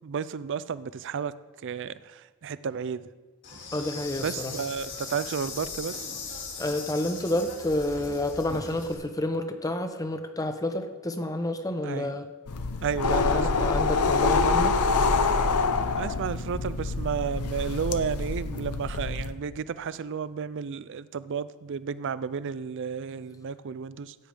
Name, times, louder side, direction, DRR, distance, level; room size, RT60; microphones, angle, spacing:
voice 1, 0.0-1.3 1.6-3.1 4.2-6.1 11.8-12.2 12.8-13.9 16.0-24.2, right 6 dB, 55° right, 16 dB, 0.4 m, -32 dB
Insect, 3.4-8.9, left 4 dB, 55° left, 2.4 m, -39 dB
voice 2, 3.7-4.5 6.6-12.3 13.1-14.8, left 1 dB, 15° left, 8 dB, 0.7 m, -29 dB
sound 1, 12.5-19.3, left 4 dB, 85° left, 0.7 m, -26 dB
15.5 x 9.0 x 3.4 m, 1.4 s
head